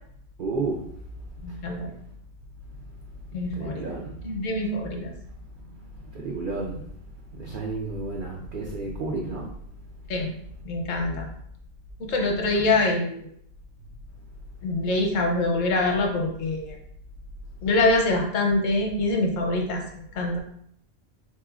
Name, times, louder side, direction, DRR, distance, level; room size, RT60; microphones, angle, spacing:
voice 1, 0.4-0.9 3.5-4.2 6.1-6.8 7.3-9.5, right 3 dB, 90° right, -2 dB, 0.4 m, -31 dB
voice 2, 1.4-1.9 3.3-3.9 4.2-5.1 10.1-10.3 10.6-11.2 12.0-13.3 14.6-16.8 17.6-19.8 20.1-20.4, left 2 dB, 70° left, 1 dB, 1.0 m, -24 dB
3.8 x 2.9 x 2.4 m, 0.67 s
omnidirectional pair, 1.5 m